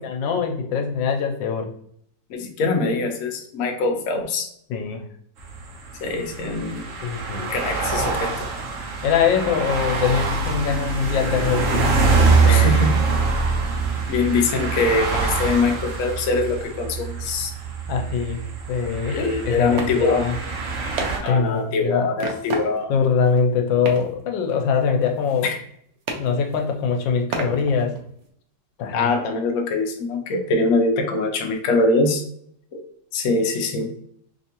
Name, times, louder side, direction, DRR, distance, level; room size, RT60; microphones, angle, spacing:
voice 1, 0.0-1.7 4.7-5.1 7.0-7.5 9.0-11.9 12.4-12.8 17.9-18.4 18.7-20.3 21.3-22.1 22.9-25.5 26.1-27.9 28.8-29.1, left 6 dB, 85° left, 5 dB, 1.3 m, -23 dB
voice 2, 2.3-4.5 6.0-6.8 7.5-8.3 12.5-13.0 14.1-17.5 19.1-20.3 21.2-22.9 25.4-25.6 28.9-32.2 32.7-32.9 33.1-33.9, left 3 dB, 65° left, 3 dB, 0.8 m, -23 dB
sound 1, 5.4-21.2, right 4 dB, 55° right, 1.0 m, -24 dB
sound 2, 18.8-18.9 19.2-19.4 19.8-20.0 20.3-20.4 21.0-21.8 22.2-23.0 23.3-23.4 23.8-24.2 24.5-25.8 26.1-26.8 27.3-28.3, right 3 dB, 75° right, 0.6 m, -32 dB
3.3 x 3.3 x 2.9 m, 0.67 s
omnidirectional pair, 2.0 m